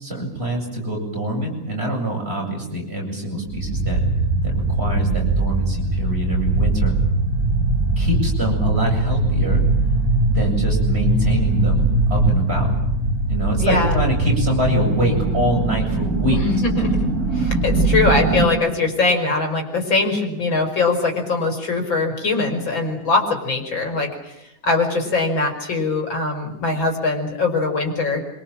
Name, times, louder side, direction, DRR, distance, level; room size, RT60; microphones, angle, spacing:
voice 1, 0.0-4.0 4.4-6.9 8.0-9.6 10.2-12.7 13.3-16.4, right 1 dB, 30° right, -1 dB, 8.4 m, -25 dB
sound 1, 3.5-18.5, right 2 dB, 50° right, 3.8 m, -20 dB
voice 2, 13.6-14.0 16.3-28.2, left 3 dB, 85° left, 3 dB, 6.1 m, -22 dB
27.0 x 25.5 x 7.5 m, 0.87 s
omnidirectional pair, 2.1 m